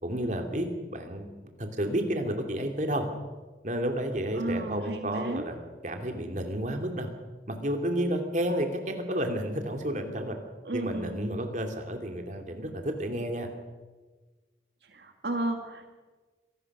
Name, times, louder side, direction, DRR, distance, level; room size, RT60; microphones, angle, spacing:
voice 1, 0.0-1.3 1.6-3.1 3.6-5.6 5.8-7.1 7.5-10.4 10.7-13.5, right 1 dB, 45° right, 4 dB, 2.8 m, -31 dB
voice 2, 4.4-5.4 10.6-11.3 14.9-15.9, right 1 dB, 75° right, 4 dB, 1.8 m, -33 dB
26.0 x 18.5 x 6.2 m, 1.3 s
head